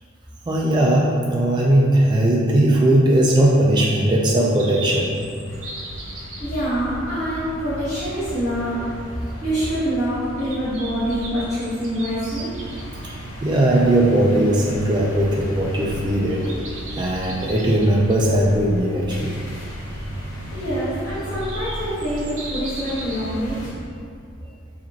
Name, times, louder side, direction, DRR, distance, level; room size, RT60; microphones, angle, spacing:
voice 1, 0.5-5.2 13.0-16.5 17.0-19.4, right 1 dB, 20° right, -3 dB, 0.3 m, -18 dB
sound 1, 4.6-23.9, right 1 dB, 70° right, 0.7 m, -37 dB
sound 2, 5.4-23.7, equal, 85° left, 0.9 m, -37 dB
voice 2, 6.4-12.5 20.5-23.7, equal, 35° left, -16 dB, 1.3 m, -25 dB
7.2 x 2.5 x 2.8 m, 2.3 s
head